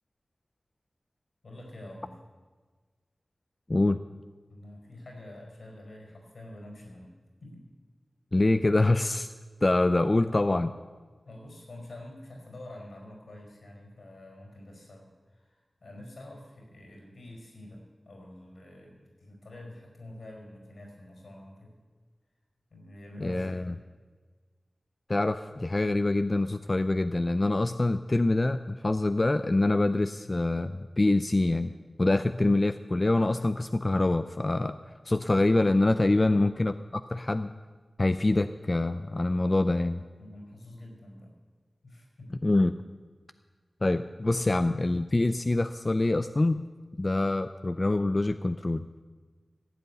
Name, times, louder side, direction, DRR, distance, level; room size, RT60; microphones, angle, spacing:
voice 1, 1.4-2.1 4.5-7.1 7.4-7.7 11.2-21.7 22.7-23.8 36.2-36.5 40.2-41.3 41.8-42.3, left 1 dB, 75° left, 1 dB, 5.1 m, -47 dB
voice 2, 3.7-4.0 8.3-9.3 9.6-10.7 23.2-23.8 25.1-31.7 32.0-34.7 35.1-37.5 38.0-40.0 42.4-42.8 43.8-46.7 47.0-48.9, left 2 dB, 30° left, 10 dB, 0.4 m, -25 dB
15.5 x 8.1 x 9.6 m, 1.4 s
wide cardioid pair, 95°, 0 cm